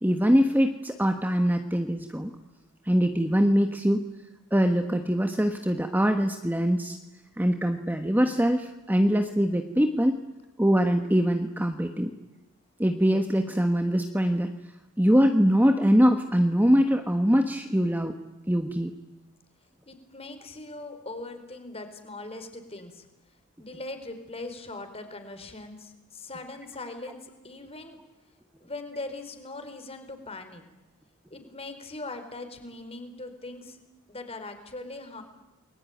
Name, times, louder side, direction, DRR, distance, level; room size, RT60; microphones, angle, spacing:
voice 1, 0.0-2.3 2.8-4.0 4.5-7.0 7.4-10.2 10.6-12.1 12.8-14.5 15.0-18.2 18.5-18.9, equal, 10° right, 5 dB, 1.4 m, -23 dB
voice 2, 19.9-23.1 23.6-28.0 28.6-30.6 31.3-33.8 34.1-35.2, left 2 dB, 25° left, 7 dB, 4.3 m, -40 dB
29.5 x 21.5 x 9.4 m, 1.1 s
head